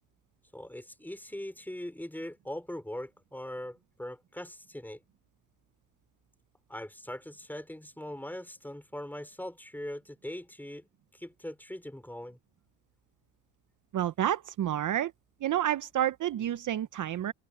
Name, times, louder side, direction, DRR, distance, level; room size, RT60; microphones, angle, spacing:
voice 1, 0.5-5.0 6.7-12.4, left 1 dB, 5° left, 5.1 m, -41 dB
voice 2, 13.9-15.1 15.4-17.3, right 11 dB, 50° right, 0.9 m, -29 dB
open air
supercardioid pair, 80°, 39 cm